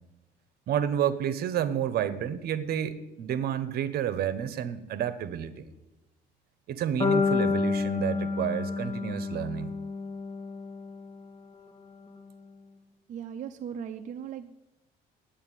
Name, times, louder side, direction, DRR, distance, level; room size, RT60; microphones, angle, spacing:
voice 1, 0.7-5.7 6.7-9.7, right 9 dB, 65° right, 14 dB, 1.0 m, -30 dB
sound 1, 7.0-11.1, left 4 dB, 35° left, 3.1 m, -29 dB
voice 2, 13.1-14.5, right 8 dB, 45° right, 6 dB, 0.6 m, -38 dB
9.4 x 8.9 x 9.2 m, 1.0 s
cardioid pair, 110°, 17 cm